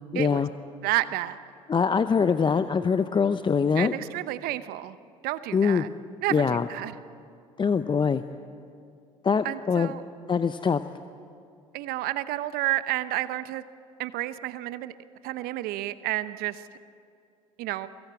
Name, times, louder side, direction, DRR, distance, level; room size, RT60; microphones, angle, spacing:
voice 1, 0.1-0.5 1.7-3.9 5.5-5.8 6.3-6.7 7.6-8.2 9.2-9.9 10.3-10.8, left 6 dB, 25° left, 11 dB, 0.8 m, -23 dB
voice 2, 0.8-1.4 3.8-5.0 5.2-5.9 6.2-6.9 9.4-10.0 11.7-13.6 14.0-14.9 15.2-16.6 17.6-17.9, right 16 dB, 60° right, 14 dB, 0.9 m, -30 dB
23.0 x 22.5 x 8.5 m, 2.5 s
hypercardioid pair, 60°, 17 cm